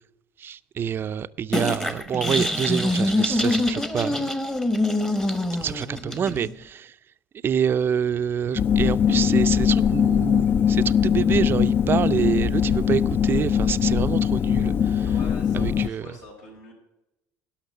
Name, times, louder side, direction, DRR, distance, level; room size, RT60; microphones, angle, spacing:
voice 1, 0.4-4.3 5.6-6.9 7.4-15.0 15.5-16.1, right 8 dB, 35° right, 0.5 m, -27 dB
sound 1, 1.5-6.5, left 1 dB, 10° left, 0.9 m, -25 dB
sound 2, 8.6-15.9, left 8 dB, 35° left, 0.4 m, -21 dB
voice 2, 15.0-16.7, left 2 dB, 80° left, 5.7 m, -43 dB
11.5 x 5.9 x 9.3 m
supercardioid pair, 105°, 6 cm